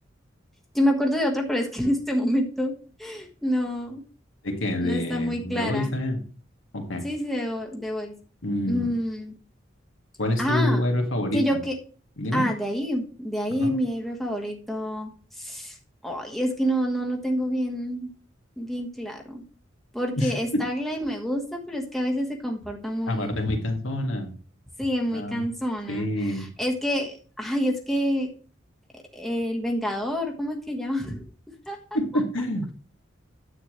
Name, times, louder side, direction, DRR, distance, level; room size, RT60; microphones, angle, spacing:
voice 1, 0.7-2.7 3.0-4.0 4.8-5.9 7.0-8.1 8.7-9.3 10.4-10.8 11.3-11.8 12.3-15.1 15.4-15.7 16.0-18.1 18.6-19.4 19.9-23.5 24.8-26.1 26.3-28.3 29.1-31.2 31.7-31.8, equal, ahead, 0 dB, 1.3 m, -27 dB
voice 2, 4.4-6.2 6.7-7.1 8.4-8.9 10.2-11.4 12.2-12.4 13.6-13.7 20.2-20.6 23.1-24.3 25.1-25.4 25.9-26.5 31.9-32.7, left 1 dB, 80° left, 3 dB, 1.9 m, -27 dB
9.8 x 8.1 x 3.2 m, 0.40 s
head